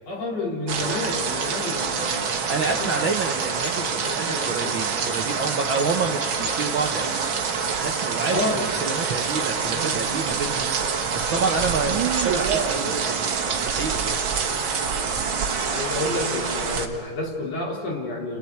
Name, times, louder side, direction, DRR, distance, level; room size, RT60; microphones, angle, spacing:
voice 1, 0.1-3.1 3.7-4.7 8.3-8.7 9.7-9.9 11.3-11.5 15.7-18.4, left 2 dB, 50° left, -2 dB, 4.1 m, -30 dB
sound 1, 0.7-16.9, right 5 dB, 50° right, 1.8 m, -26 dB
voice 2, 2.5-14.2, right 4 dB, 70° right, 3 dB, 1.2 m, -29 dB
29.5 x 29.0 x 4.6 m, 2.1 s
omnidirectional pair, 3.7 m